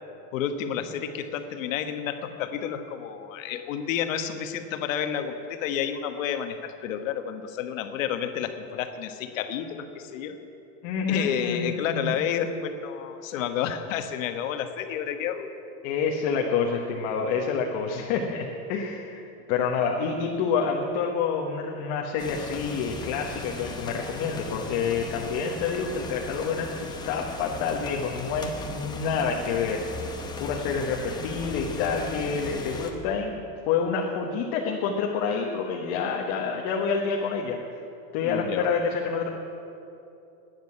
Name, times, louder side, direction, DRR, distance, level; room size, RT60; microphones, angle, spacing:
voice 1, 0.3-10.4 11.1-15.5 38.2-38.7, left 8 dB, 70° left, 8 dB, 1.3 m, -30 dB
voice 2, 10.8-12.1 15.8-29.8 30.4-37.6 38.1-39.3, left 5 dB, 45° left, 0 dB, 1.2 m, -28 dB
sound 1, 22.2-32.9, left 3 dB, 10° left, 0.9 m, -37 dB
12.0 x 9.5 x 9.7 m, 2.8 s
supercardioid pair, 165°, 40 cm